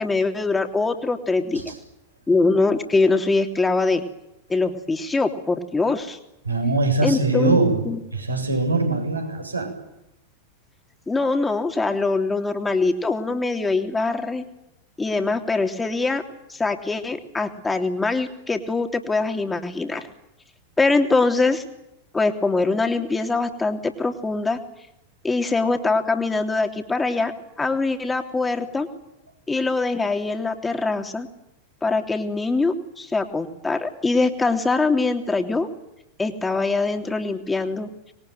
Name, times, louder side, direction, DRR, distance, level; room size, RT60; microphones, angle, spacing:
voice 1, 0.0-1.7 2.3-4.0 4.5-6.2 7.0-8.0 11.1-14.4 15.0-16.2 16.5-20.0 20.8-21.6 22.1-24.6 25.2-28.9 29.5-31.3 31.8-35.7 36.2-37.9, left 3 dB, 10° left, 6 dB, 3.3 m, -23 dB
voice 2, 6.4-7.8 8.1-9.7, right 3 dB, 80° right, 3 dB, 7.9 m, -22 dB
26.0 x 22.5 x 9.4 m, 0.85 s
figure-of-eight pair, 90°, 0 cm